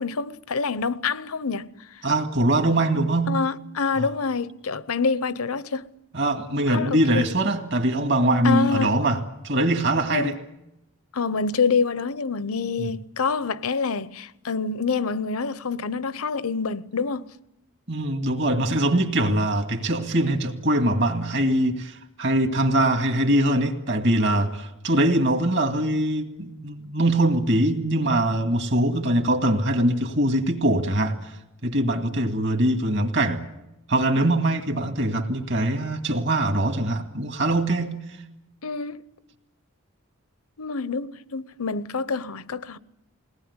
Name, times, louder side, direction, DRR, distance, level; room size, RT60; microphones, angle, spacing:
voice 1, 0.0-1.7 3.3-5.9 6.7-7.3 8.4-9.0 10.1-10.4 11.1-17.3 38.6-39.0 40.6-42.8, left 4 dB, 75° left, 0.8 m, -26 dB
voice 2, 2.0-3.4 4.0-4.1 6.1-9.2 9.4-10.4 12.8-12.9 17.9-31.4 31.6-33.4 33.9-38.0, right 1 dB, 50° right, 2.1 m, -22 dB
22.0 x 18.5 x 9.7 m
head